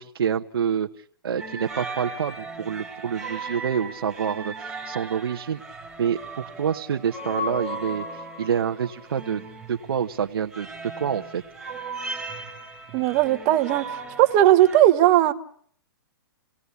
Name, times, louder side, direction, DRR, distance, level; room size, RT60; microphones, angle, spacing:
voice 1, 0.0-5.6 6.0-6.2 6.6-11.4, right 8 dB, 85° right, 3 dB, 1.1 m, -27 dB
sound 1, 1.4-14.8, right 1 dB, ahead, 3.9 m, -37 dB
voice 2, 12.9-15.3, right 13 dB, 30° right, 9 dB, 1.3 m, -18 dB
29.0 x 18.0 x 8.2 m, 0.62 s
hypercardioid pair, 155°, 12 cm